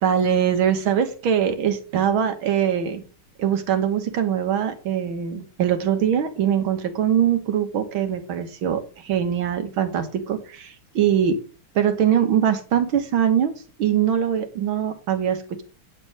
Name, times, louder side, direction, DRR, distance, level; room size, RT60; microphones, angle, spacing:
voice 1, 0.0-3.0 3.4-11.4 11.8-13.5 13.8-15.6, right 9 dB, 70° right, 8 dB, 1.9 m, -22 dB
9.5 x 4.6 x 7.6 m, 0.38 s
omnidirectional pair, 2.4 m